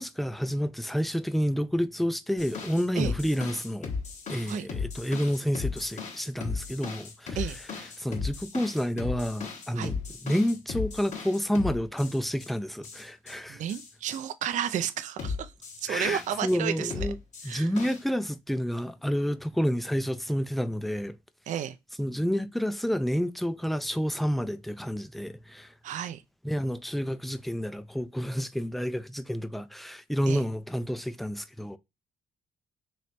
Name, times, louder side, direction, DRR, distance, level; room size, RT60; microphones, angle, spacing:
voice 1, 0.0-3.9 4.3-7.5 8.0-13.6 15.9-17.2 17.4-21.2 22.0-25.7 26.4-31.8, equal, ahead, 0.4 m, -29 dB
sound 1, 2.4-12.5 12.8-13.3 13.7-14.2 15.2-16.6 16.9-18.0, left 5 dB, 50° left, 1.3 m, -36 dB
voice 2, 13.5-15.5 15.8-16.9 17.4-17.7 21.5-21.8 25.8-26.2 30.3-30.4, right 9 dB, 55° right, 0.4 m, -32 dB
3.1 x 3.1 x 4.2 m
cardioid pair, 95°, 15 cm